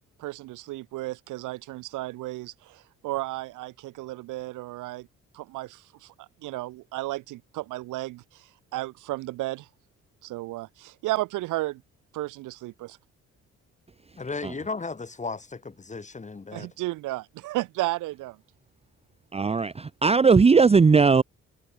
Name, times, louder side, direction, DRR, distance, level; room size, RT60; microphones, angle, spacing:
voice 1, 0.2-5.1 5.3-8.2 8.7-9.7 10.2-11.8 12.1-13.0 16.5-18.4, right 18 dB, 85° right, 0.7 m, -33 dB
voice 2, 14.2-16.7, left 4 dB, 25° left, 2.2 m, -35 dB
voice 3, 19.3-21.2, right 5 dB, 20° right, 0.6 m, -18 dB
cardioid pair, 90°, 30 cm